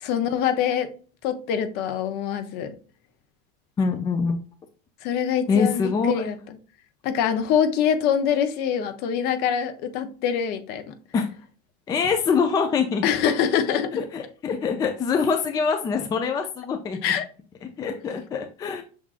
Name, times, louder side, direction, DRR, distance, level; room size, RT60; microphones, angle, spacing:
voice 1, 0.0-0.9 1.2-2.7 5.0-6.6 7.0-10.9 13.0-13.9 17.0-17.3, left 8 dB, 50° left, 10 dB, 0.7 m, -24 dB
voice 2, 3.8-4.4 5.5-6.2 11.1-11.3 11.9-13.0 13.9-17.0 17.6-18.8, left 5 dB, 20° left, 6 dB, 0.4 m, -24 dB
6.1 x 3.6 x 2.4 m, 0.38 s
cardioid pair, 160°, 21 cm